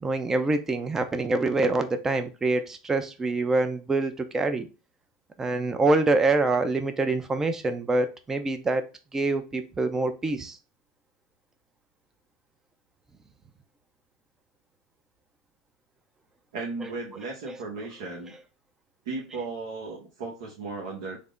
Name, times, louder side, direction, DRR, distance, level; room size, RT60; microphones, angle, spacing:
voice 1, 0.0-4.7 5.4-8.8 9.1-10.6 16.8-16.9 17.4-17.6, right 2 dB, 15° right, 8 dB, 0.5 m, -25 dB
voice 2, 16.5-18.3 19.0-21.2, right 3 dB, 70° right, -2 dB, 0.9 m, -35 dB
3.4 x 2.1 x 3.6 m, 0.31 s
hypercardioid pair, 115°, 3 cm